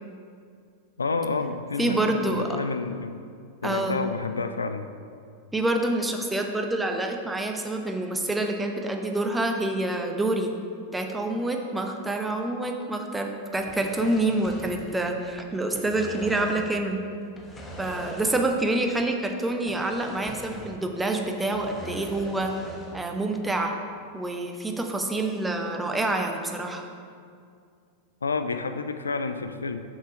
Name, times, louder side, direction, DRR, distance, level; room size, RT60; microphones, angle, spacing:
voice 1, 1.0-3.3 3.6-4.9 28.2-29.8, left 4 dB, 75° left, 9 dB, 0.4 m, -29 dB
voice 2, 1.8-2.6 3.6-4.0 5.5-10.5 10.9-17.0 17.8-22.5 22.9-23.7 24.1-26.9, right 2 dB, 10° right, 3 dB, 0.8 m, -27 dB
sound 1, 13.6-15.3 15.6-16.8 17.3-18.7 19.0-19.1 19.7-20.9 21.2-23.1, equal, 15° left, 1.1 m, -41 dB
6.8 x 6.4 x 5.1 m, 2.3 s
figure-of-eight pair, 90°, 0 cm